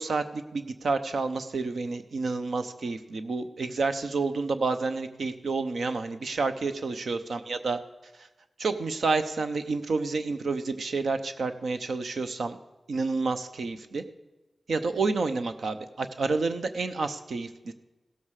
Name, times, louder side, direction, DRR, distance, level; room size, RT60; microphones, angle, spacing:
voice 1, 0.0-7.8 8.2-8.3 8.6-12.6 12.9-14.0 14.7-17.7, right 3 dB, 80° right, 9 dB, 0.7 m, -29 dB
16.5 x 7.4 x 4.8 m, 1.1 s
cardioid pair, 55°, 0 cm